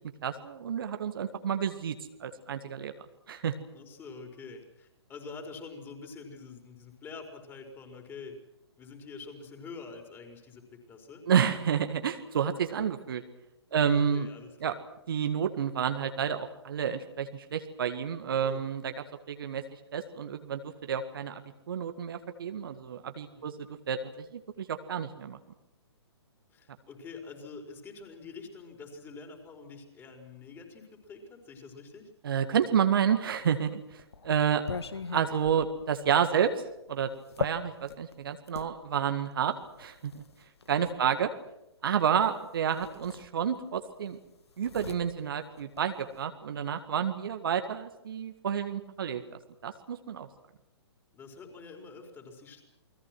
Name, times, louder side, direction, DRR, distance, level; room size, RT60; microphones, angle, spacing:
voice 1, 0.2-2.0 2.2-2.9 3.3-3.5 11.3-13.2 13.7-14.3 14.6-14.7 15.1-18.9 19.3-19.6 19.9-23.5 23.9-25.4 32.2-34.6 35.1-36.5 36.9-37.1 37.4-40.2 40.7-41.3 41.8-44.2 44.6-49.2 49.6-50.3, right 8 dB, 55° right, 7 dB, 1.9 m, -30 dB
voice 2, 3.7-8.4 8.8-11.2 13.7-14.8 18.4-18.6 23.3-23.5 26.5-32.1 40.9-41.1 51.1-52.6, left 4 dB, 15° left, 4 dB, 4.8 m, -46 dB
sound 1, 33.4-38.7 39.6-41.0 42.2-42.3 42.7-43.8 44.0-46.3, left 4 dB, 65° left, 1.7 m, -40 dB
29.0 x 21.5 x 6.2 m, 0.88 s
figure-of-eight pair, 120°, 14 cm